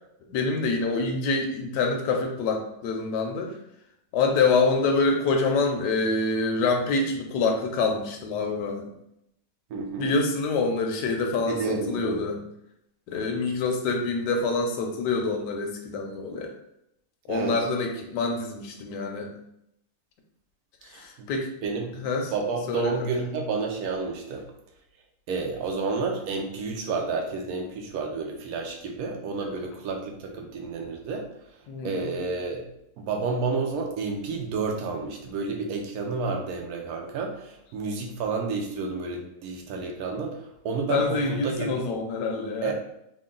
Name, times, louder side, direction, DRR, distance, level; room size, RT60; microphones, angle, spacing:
voice 1, 0.3-3.5 4.1-8.9 10.0-12.4 13.1-16.5 17.3-19.3 20.9-21.5 22.0-22.3 22.7-22.9 31.7-32.1 40.9-42.7, left 3 dB, 80° left, 3 dB, 1.3 m, -26 dB
voice 2, 9.7-10.1 11.4-12.2 17.3-17.6 20.8-21.3 21.6-22.0 22.3-24.5 25.3-31.3 31.8-32.7 33.0-41.7 42.6-42.7, right 4 dB, 65° right, 2 dB, 1.1 m, -30 dB
3.7 x 2.2 x 3.7 m, 0.79 s
omnidirectional pair, 1.8 m